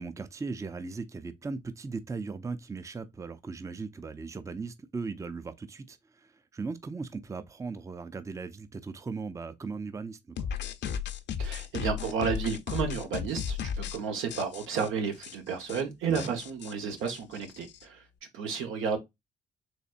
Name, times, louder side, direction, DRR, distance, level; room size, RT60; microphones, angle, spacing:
voice 1, 0.0-10.5 16.1-16.3, right 4 dB, 15° right, 0.5 m, -38 dB
sound 1, 10.4-14.0 14.3-14.9 15.2-15.3 15.6-15.8 16.1-17.8, left 7 dB, 60° left, 0.6 m, -35 dB
voice 2, 11.4-18.0 18.3-19.0, right 6 dB, 85° right, 1.2 m, -32 dB
4.1 x 3.2 x 2.5 m
cardioid pair, 90°, 20 cm